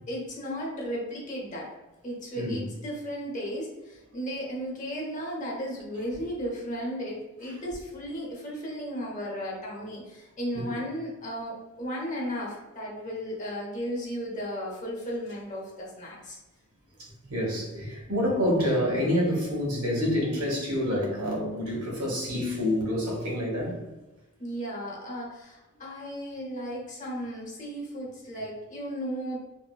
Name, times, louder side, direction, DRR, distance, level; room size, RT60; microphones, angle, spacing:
voice 1, 0.1-1.7 2.0-16.4 17.7-17.9 24.4-29.4, equal, 35° left, -3 dB, 0.9 m, -35 dB
voice 2, 17.0-23.8, left 1 dB, 90° right, -2 dB, 1.0 m, -28 dB
3.6 x 2.2 x 2.2 m, 1.1 s
head